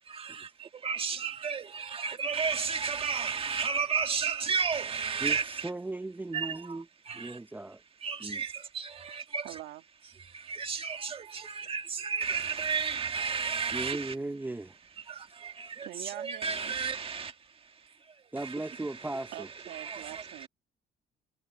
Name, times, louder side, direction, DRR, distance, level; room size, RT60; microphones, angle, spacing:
voice 1, 0.8-5.7 6.3-6.6 7.1-7.2 8.0-8.5 8.8-9.4 10.5-14.1 16.2-17.3 19.8-20.2, right 5 dB, 35° right, 1.9 m, -32 dB
voice 2, 5.2-6.9 7.1-7.8 8.2-8.4 13.7-14.7 18.3-19.5, right 2 dB, 10° right, 0.8 m, -37 dB
voice 3, 9.4-9.8 15.8-16.8 19.3-20.5, right 15 dB, 85° right, 2.2 m, -43 dB
cardioid pair, 110°, 17 cm